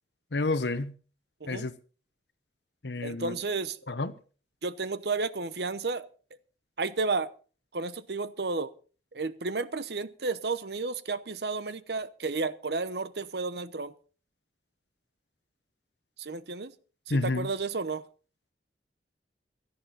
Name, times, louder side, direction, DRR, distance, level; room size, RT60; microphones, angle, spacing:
voice 1, 0.3-0.9 1.5-1.7 2.8-3.3 3.9-4.1 17.1-17.5, left 2 dB, 75° left, 1.1 m, -29 dB
voice 2, 3.0-3.8 4.6-6.1 6.8-7.3 7.7-8.7 9.1-13.9 16.2-16.7 17.1-18.0, right 3 dB, 65° right, 0.9 m, -32 dB
17.0 x 13.0 x 4.1 m
head